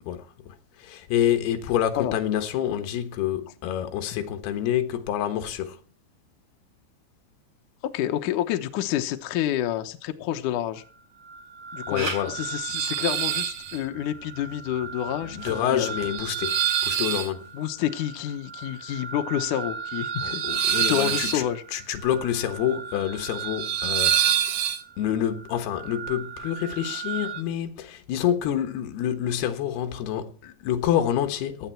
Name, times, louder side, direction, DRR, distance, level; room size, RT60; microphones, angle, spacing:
voice 1, 0.8-5.8 11.9-12.3 15.3-16.6 16.8-17.5 20.2-21.4 21.7-24.4 25.0-31.7, left 10 dB, 70° left, 3.1 m, -27 dB
voice 2, 7.9-10.8 11.7-15.9 17.5-20.4 20.9-21.6, left 12 dB, 85° left, 1.8 m, -28 dB
sound 1, 11.2-27.4, right 9 dB, 75° right, 3.1 m, -29 dB
Camera, 11.9-17.3, right 2 dB, 40° right, 4.5 m, -41 dB
16.5 x 11.0 x 4.5 m
omnidirectional pair, 5.1 m